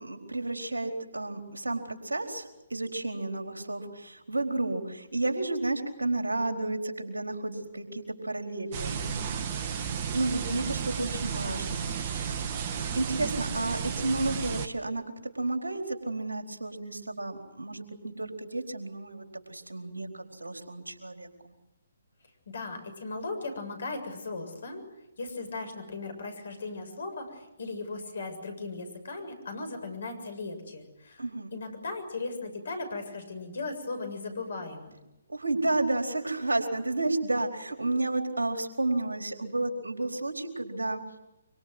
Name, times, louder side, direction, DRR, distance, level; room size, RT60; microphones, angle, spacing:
voice 1, 0.0-9.7 10.1-12.3 12.9-15.0 15.3-21.5 31.2-31.5 35.3-41.0, right 2 dB, 80° right, 4 dB, 4.4 m, -32 dB
sound 1, 8.7-14.7, right 7 dB, 35° right, 1.9 m, -33 dB
voice 2, 22.5-24.8 25.2-31.2 31.5-35.0, left 3 dB, 60° left, 7 dB, 7.2 m, -37 dB
25.5 x 25.0 x 8.1 m, 0.96 s
figure-of-eight pair, 135°, 0 cm